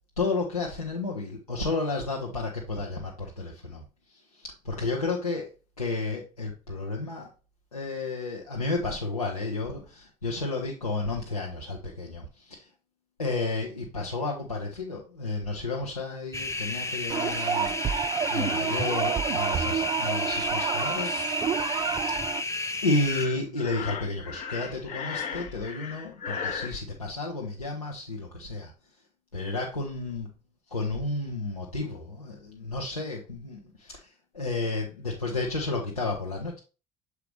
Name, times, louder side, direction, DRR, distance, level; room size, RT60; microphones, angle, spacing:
voice 1, 0.2-3.8 4.4-5.5 5.8-7.3 7.7-12.6 13.2-21.2 22.2-22.3 22.8-28.7 29.3-30.3 30.7-34.0 34.3-36.6, left 3 dB, 85° left, -2 dB, 0.9 m, -32 dB
sound 1, 16.3-23.3, left 2 dB, 15° left, 0.7 m, -32 dB
sound 2, 17.1-22.4, right 8 dB, 25° right, 0.3 m, -29 dB
Breathing, 23.0-26.8, left 6 dB, 45° left, 0.8 m, -36 dB
6.8 x 4.7 x 3.2 m, 0.31 s
figure-of-eight pair, 60°, 18 cm